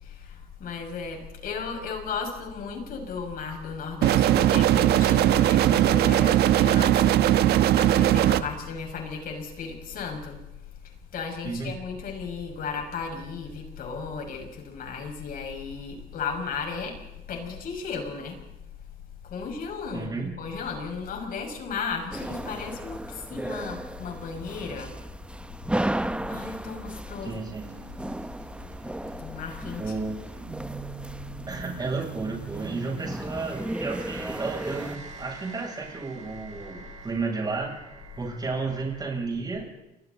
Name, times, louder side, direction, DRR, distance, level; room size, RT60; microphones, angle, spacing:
voice 1, 0.0-10.4 11.1-17.0 17.3-18.4 19.2-20.1 20.4-24.9 25.8-27.4 29.2-29.9, left 5 dB, 60° left, 3 dB, 6.3 m, -35 dB
sound 1, 4.0-8.4, right 12 dB, 75° right, 1.1 m, -19 dB
voice 2, 11.4-11.7 19.9-20.4 27.2-27.7 29.8-30.2 31.5-37.8 38.2-39.7, right 3 dB, 25° right, -1 dB, 7.7 m, -32 dB
sound 2, 22.1-35.0, right 1 dB, 5° right, 0.9 m, -35 dB
sound 3, 27.6-39.2, right 4 dB, 45° right, 5.1 m, -44 dB
29.5 x 24.5 x 4.2 m, 0.92 s
cardioid pair, 110°, 17 cm